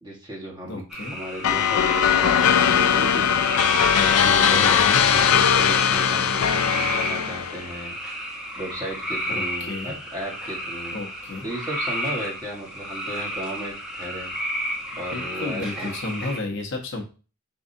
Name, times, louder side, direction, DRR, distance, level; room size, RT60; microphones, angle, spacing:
voice 1, 0.0-0.8 1.1-3.5 4.0-7.9 8.5-11.0 11.4-14.3 15.0-16.0, right 1 dB, 20° right, -3 dB, 1.3 m, -35 dB
voice 2, 0.7-1.2 4.5-5.0 9.3-10.0 10.9-11.5 14.9-17.0, left 2 dB, 55° left, 2 dB, 0.9 m, -33 dB
sound 1, 0.9-16.4, equal, 5° right, 0.9 m, -32 dB
sound 2, 1.4-7.7, left 8 dB, 80° left, 0.4 m, -19 dB
4.6 x 3.6 x 2.7 m, 0.34 s
head